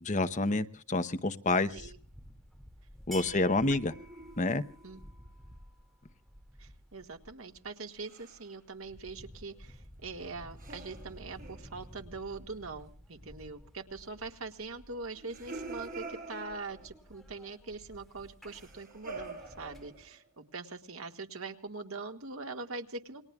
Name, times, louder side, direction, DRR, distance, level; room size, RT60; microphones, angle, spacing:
voice 1, 0.0-1.7 3.1-3.9 4.4-4.6, left 2 dB, 35° left, 11 dB, 0.9 m, -28 dB
sound 1, 1.7-20.0, equal, ahead, 2.3 m, -53 dB
voice 2, 3.3-3.8 4.8-5.0 6.6-23.2, right 3 dB, 70° right, 6 dB, 1.9 m, -43 dB
sound 2, 3.6-5.0 8.0-8.5 10.6-12.3 15.1-17.0 18.5-20.3, right 3 dB, 40° right, 5.9 m, -46 dB
28.5 x 21.0 x 2.4 m, 0.42 s
head